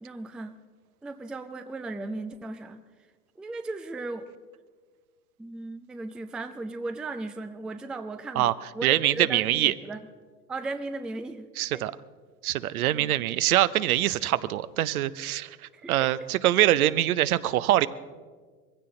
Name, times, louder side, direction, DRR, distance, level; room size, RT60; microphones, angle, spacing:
voice 1, 0.0-0.6 1.0-2.8 3.4-4.3 5.4-10.0 10.5-11.8 12.8-13.3 15.7-16.3, right 2 dB, ahead, 9 dB, 0.4 m, -37 dB
voice 2, 8.8-9.7 11.6-11.9 12.4-17.9, right 13 dB, 65° right, 15 dB, 0.8 m, -24 dB
22.0 x 16.0 x 3.8 m, 1.5 s
hypercardioid pair, 90°, 47 cm